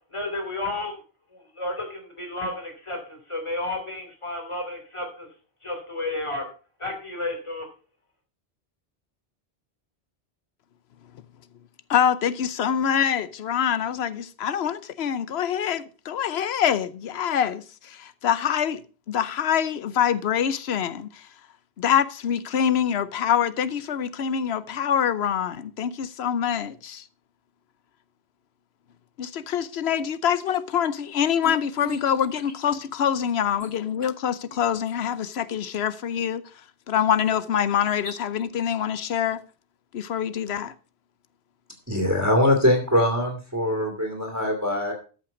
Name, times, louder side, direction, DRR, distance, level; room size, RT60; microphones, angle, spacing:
voice 1, 0.1-0.9 1.3-5.3 5.6-6.5 6.8-7.7, left 2 dB, 30° left, 2.9 m, -32 dB
voice 2, 11.9-18.8 19.1-21.1 21.8-27.0 29.2-36.4 36.9-39.4 39.9-40.7, left 8 dB, 85° left, 1.0 m, -25 dB
voice 3, 41.9-44.9, left 1 dB, 15° right, 2.3 m, -22 dB
13.0 x 5.8 x 5.2 m
omnidirectional pair, 1.0 m